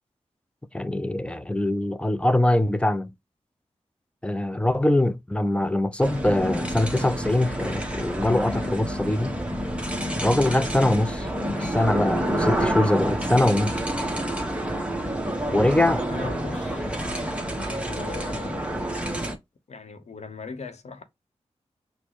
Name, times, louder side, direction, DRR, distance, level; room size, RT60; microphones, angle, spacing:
voice 1, 0.7-3.1 4.2-9.4 10.2-11.3 11.5-13.8 15.5-16.3, left 1 dB, 10° left, 0.5 m, -23 dB
sound 1, 6.0-19.3, right 1 dB, 10° right, 1.1 m, -28 dB
voice 2, 16.1-16.8 17.9-18.8 19.7-21.0, left 4 dB, 70° left, 0.9 m, -39 dB
6.3 x 2.2 x 3.0 m
wide cardioid pair, 75°, 12 cm